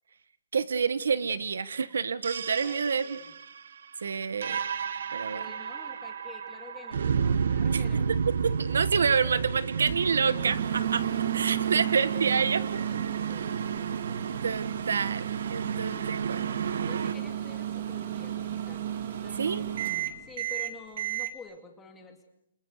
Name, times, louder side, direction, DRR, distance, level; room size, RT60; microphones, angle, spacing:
voice 1, 0.5-3.2 4.0-4.6 5.1-5.4 7.7-7.8 8.4-11.0 11.3-12.6 14.4-16.5 19.4-19.6, right 6 dB, 85° right, 15 dB, 1.5 m, -28 dB
sound 1, 2.2-17.1, right 6 dB, 60° right, 1.2 m, -32 dB
voice 2, 2.6-3.4 5.3-8.1 11.5-12.2 12.5-13.5 15.8-16.0 16.8-18.9 19.2-19.7 20.2-22.2, left 4 dB, 10° left, 4 dB, 2.6 m, -49 dB
Microwave oven, 9.8-21.3, right 11 dB, 40° right, 2.3 m, -33 dB
29.0 x 27.5 x 6.6 m, 0.80 s
hypercardioid pair, 175°, 0 cm